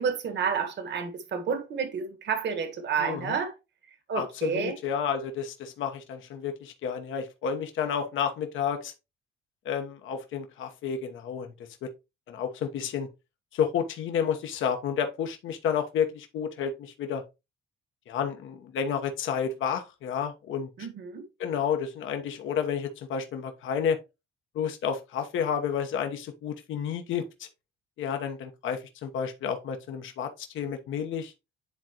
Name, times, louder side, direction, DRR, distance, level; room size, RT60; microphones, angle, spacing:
voice 1, 0.0-3.5 4.1-4.8 20.8-21.2, right 6 dB, 65° right, 1.6 m, -30 dB
voice 2, 3.0-3.4 4.1-8.9 9.6-11.5 12.3-13.1 13.5-17.2 18.1-20.7 21.4-24.0 24.5-27.5 28.0-31.3, left 7 dB, 80° left, 1.1 m, -30 dB
10.0 x 3.8 x 3.0 m
cardioid pair, 90°, 20 cm